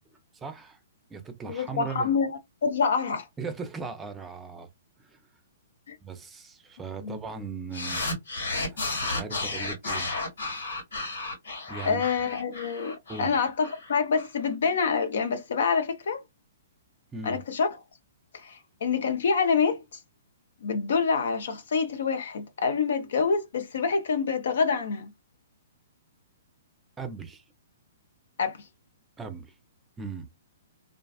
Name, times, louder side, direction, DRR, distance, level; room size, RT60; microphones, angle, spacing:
voice 1, 0.1-0.8 1.1-2.1 3.4-4.7 5.0-5.2 6.0-8.1 8.7-10.1 11.7-12.0 13.1-13.4 17.1-17.4 27.0-27.4 29.2-29.5 30.0-30.3, right 5 dB, 15° right, 0.5 m, -38 dB
voice 2, 1.5-2.3 2.6-3.3 5.9-6.0 7.0-7.2 11.8-16.2 17.2-17.7 18.4-19.8 20.6-25.1 28.4-28.6, left 5 dB, 70° left, 0.6 m, -26 dB
sound 1, 7.7-14.3, left 2 dB, 85° left, 1.7 m, -33 dB
2.5 x 2.3 x 2.3 m
hypercardioid pair, 135°, 0 cm